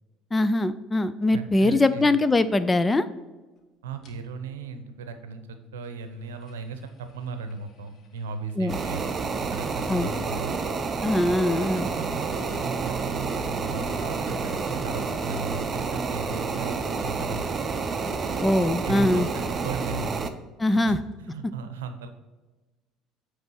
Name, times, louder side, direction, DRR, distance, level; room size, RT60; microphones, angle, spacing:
voice 1, 0.3-3.1 8.6-8.8 9.9-10.1 11.0-11.9 18.4-19.3 20.6-21.0, left 2 dB, 20° left, 13 dB, 0.5 m, -22 dB
voice 2, 1.3-2.2 3.8-10.6 11.5-16.8 17.0-17.6 18.8-20.4 20.7-22.1, right 4 dB, 85° right, 9 dB, 0.7 m, -37 dB
sound 1, 4.0-4.1 5.8-9.3 9.6-18.3 20.0-20.1 20.4-20.5 20.8-20.9, left 2 dB, 45° left, 1.3 m, -46 dB
sound 2, 8.7-20.3, right 4 dB, 35° right, 0.7 m, -29 dB
8.8 x 3.3 x 6.1 m, 1.2 s
hypercardioid pair, 70°, 0 cm